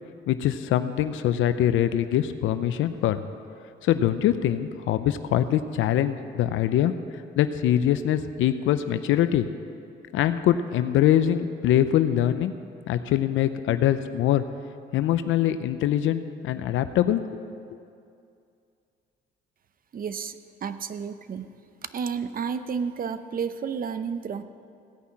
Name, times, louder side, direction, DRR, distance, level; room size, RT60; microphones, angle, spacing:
voice 1, 0.3-3.2 3.8-6.9 7.4-9.5 10.1-12.5 12.9-14.4 14.9-17.2, left 11 dB, 85° left, 11 dB, 0.6 m, -23 dB
voice 2, 19.9-21.5 21.9-24.4, right 6 dB, 45° right, 11 dB, 0.7 m, -31 dB
16.5 x 5.7 x 8.4 m, 2.4 s
cardioid pair, 90°, 20 cm